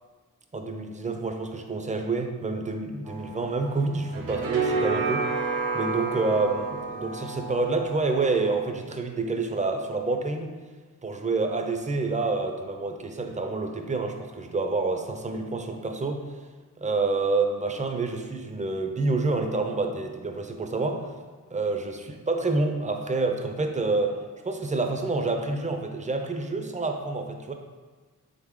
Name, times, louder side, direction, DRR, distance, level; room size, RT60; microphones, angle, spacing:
voice 1, 0.5-5.3 5.7-10.5 11.0-16.2 16.8-21.1 21.5-24.2 24.4-27.5, right 3 dB, 20° right, 5 dB, 0.4 m, -28 dB
sound 1, 3.1-8.7, right 4 dB, 85° right, 0.6 m, -31 dB
3.9 x 3.5 x 3.6 m, 1.4 s
cardioid pair, 75°, 36 cm